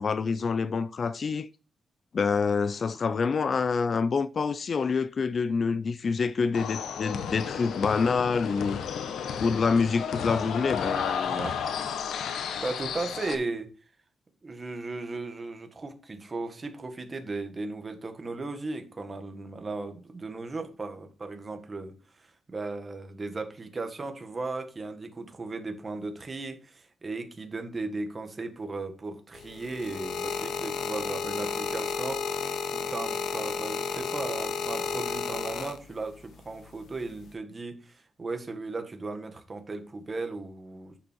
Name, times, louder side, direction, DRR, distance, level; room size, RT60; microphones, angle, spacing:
voice 1, 0.0-1.5 2.1-8.8 9.4-11.5, left 5 dB, 40° left, 0.4 m, -27 dB
sound 1, 6.5-13.3, left 7 dB, 85° left, 1.2 m, -33 dB
voice 2, 11.2-11.6 12.6-13.7 14.4-41.0, right 3 dB, 25° right, 1.7 m, -36 dB
sound 2, 29.3-36.2 37.0-37.3, left 6 dB, 65° left, 1.0 m, -32 dB
9.8 x 7.0 x 4.5 m
wide cardioid pair, 160°, 0 cm